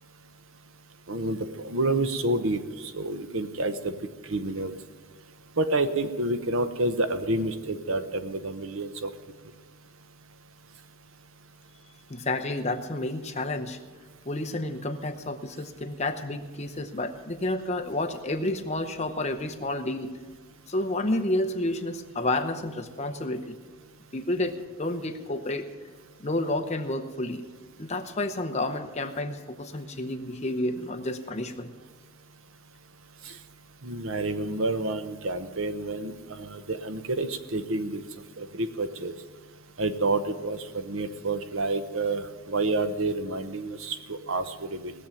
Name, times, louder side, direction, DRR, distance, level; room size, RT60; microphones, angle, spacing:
voice 1, 1.1-1.4 1.6-2.6 2.9-4.0 4.3-4.7 5.6-9.1 33.8-38.0 38.4-39.1 39.8-44.9, right 2 dB, 60° right, 10 dB, 0.8 m, -29 dB
voice 2, 12.1-13.8 14.3-20.2 20.7-23.6 24.1-24.5 24.8-25.6 26.2-27.4 27.8-31.7, left 1 dB, 30° left, 7 dB, 0.8 m, -30 dB
18.5 x 7.2 x 9.0 m, 1.4 s
head